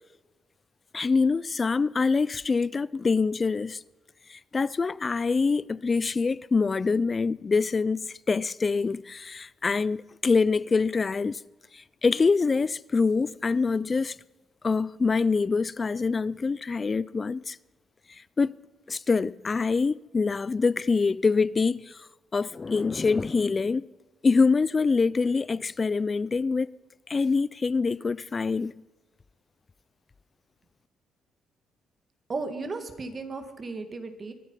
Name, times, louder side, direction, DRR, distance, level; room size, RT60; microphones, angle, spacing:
voice 1, 0.9-3.8 4.3-11.4 11.7-14.2 14.6-17.6 18.1-18.5 18.9-22.0 22.3-23.8 24.2-26.7 27.1-28.8, left 4 dB, 30° left, 0.4 m, -25 dB
voice 2, 32.3-34.3, right 3 dB, 35° right, 2.1 m, -35 dB
23.5 x 9.3 x 5.7 m
cardioid pair, 90°, 0 cm